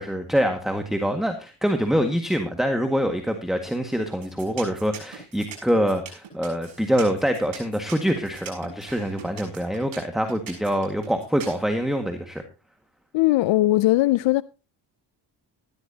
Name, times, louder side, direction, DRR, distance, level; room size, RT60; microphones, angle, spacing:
voice 1, 0.0-12.4, equal, ahead, 1.7 m, -25 dB
sound 1, 4.1-11.6, right 8 dB, 80° right, 6.5 m, -41 dB
voice 2, 13.1-14.4, left 17 dB, 70° left, 0.5 m, -19 dB
15.5 x 12.5 x 2.8 m
cardioid pair, 65°, 46 cm